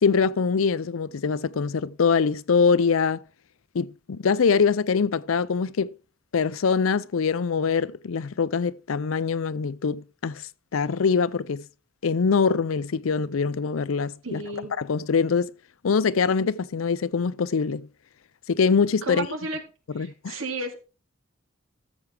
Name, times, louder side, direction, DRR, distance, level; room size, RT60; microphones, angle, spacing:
voice 1, 0.0-3.2 3.7-5.9 6.3-11.6 12.0-14.4 14.8-15.5 15.8-17.9 18.5-19.3 19.9-20.4, left 5 dB, 80° left, 0.5 m, -23 dB
voice 2, 14.2-14.7 19.0-19.6 20.0-20.8, right 3 dB, 80° right, 2.3 m, -32 dB
13.5 x 7.2 x 3.3 m
head